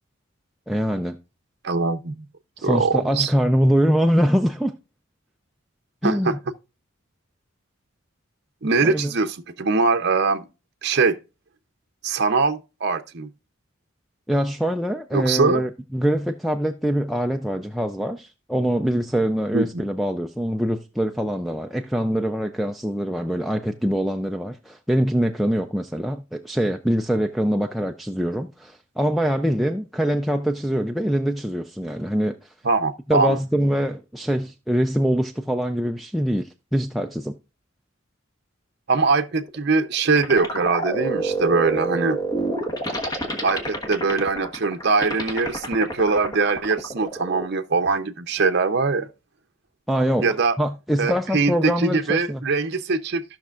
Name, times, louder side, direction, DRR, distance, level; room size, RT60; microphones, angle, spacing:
voice 1, 0.7-1.2 2.6-4.7 6.0-6.4 8.8-9.1 14.3-32.5 33.1-37.4 49.9-52.4, equal, ahead, 0.4 m, -24 dB
voice 2, 1.6-2.2 2.6-3.3 6.0-6.4 8.6-10.5 10.8-11.2 12.0-13.3 15.1-15.6 19.5-19.8 32.6-33.4 38.9-42.2 43.4-49.1 50.2-50.6 51.0-53.2, right 4 dB, 55° right, 0.7 m, -22 dB
sound 1, 39.4-47.5, right 2 dB, 20° left, 1.4 m, -28 dB
15.5 x 6.0 x 2.4 m
head